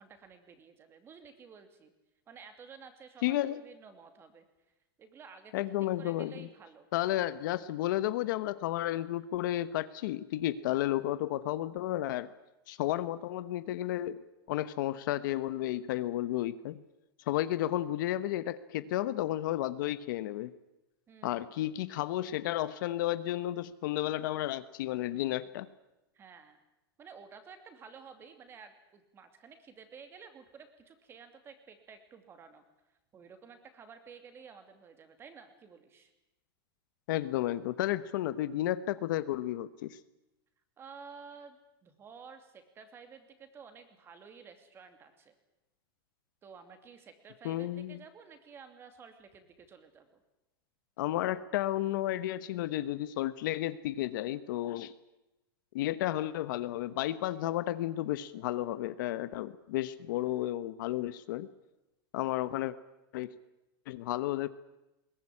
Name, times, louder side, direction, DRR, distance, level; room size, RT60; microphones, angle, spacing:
voice 1, 0.0-1.9 2.3-4.4 5.0-5.6 6.0-6.9 21.1-21.4 26.1-26.6 27.0-32.6 33.1-36.1 40.8-45.3 46.4-50.2, right 6 dB, 20° right, 8 dB, 2.6 m, -52 dB
voice 2, 3.2-3.6 5.5-6.5 6.9-12.3 12.7-16.8 17.3-20.5 21.2-25.7 37.1-40.0 47.4-48.0 51.0-54.9 55.7-61.5 62.1-62.7 63.1-63.3 63.9-64.5, left 14 dB, 55° left, 14 dB, 1.1 m, -32 dB
21.5 x 18.5 x 9.9 m, 0.98 s
supercardioid pair, 160°, 12 cm